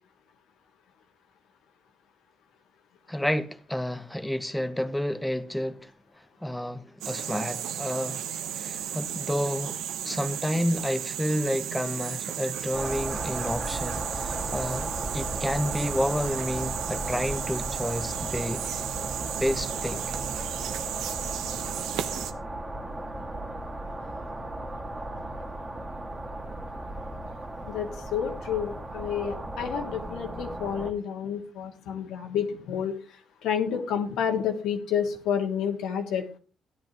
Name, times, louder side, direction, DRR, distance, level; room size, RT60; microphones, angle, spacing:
voice 1, 3.1-5.9 6.4-8.3 8.5-9.8 10.0-18.6 19.4-20.0, equal, 5° left, 1.0 m, -30 dB
sound 1, 7.0-22.3, right 9 dB, 90° right, 1.1 m, -34 dB
sound 2, 12.7-30.9, right 1 dB, 20° right, 2.0 m, -36 dB
voice 2, 27.7-33.0 33.4-36.2, left 8 dB, 90° left, 2.1 m, -29 dB
14.5 x 10.5 x 3.0 m
cardioid pair, 90°, 0 cm